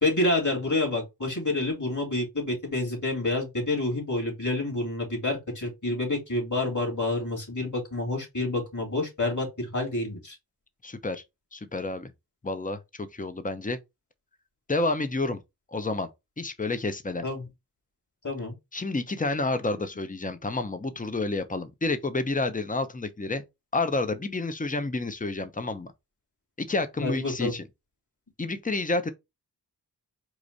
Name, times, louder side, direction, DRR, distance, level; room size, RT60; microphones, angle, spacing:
voice 1, 0.0-10.4 17.2-17.5 18.2-18.5 27.0-27.5, left 2 dB, 45° left, 3.0 m, -28 dB
voice 2, 10.8-11.2 11.5-12.1 12.4-13.8 14.7-15.4 15.7-16.1 16.4-17.3 18.7-23.4 23.7-25.9 26.6-27.6 28.4-29.1, left 2 dB, 20° left, 0.7 m, -29 dB
4.8 x 2.6 x 4.0 m
cardioid pair, 45°, 41 cm